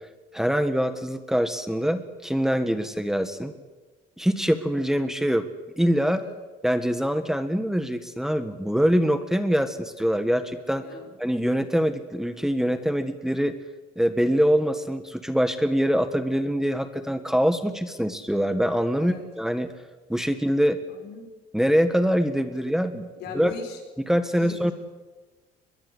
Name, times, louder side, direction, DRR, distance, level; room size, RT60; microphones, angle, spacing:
voice 1, 0.3-3.5 4.2-5.4 5.8-6.2 6.6-10.8 11.2-13.5 13.9-19.7 20.1-20.8 21.5-23.1 23.3-23.5 24.1-24.7, equal, 5° right, 9 dB, 1.6 m, -24 dB
voice 2, 10.8-11.1 18.9-19.2 20.9-21.2 23.2-23.8 24.4-24.7, left 6 dB, 80° left, 4 dB, 5.5 m, -39 dB
22.5 x 22.0 x 8.1 m, 1.3 s
cardioid pair, 110°, 17 cm